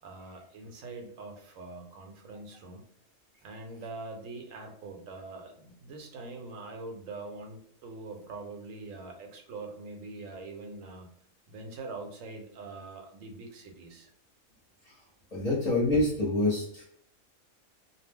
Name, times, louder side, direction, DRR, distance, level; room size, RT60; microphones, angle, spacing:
voice 1, 0.0-2.8 3.4-11.1 11.5-14.1, right 3 dB, 85° right, 3 dB, 1.0 m, -43 dB
voice 2, 15.3-16.8, left 2 dB, 40° left, -5 dB, 0.7 m, -26 dB
2.3 x 2.0 x 3.4 m, 0.66 s
omnidirectional pair, 1.3 m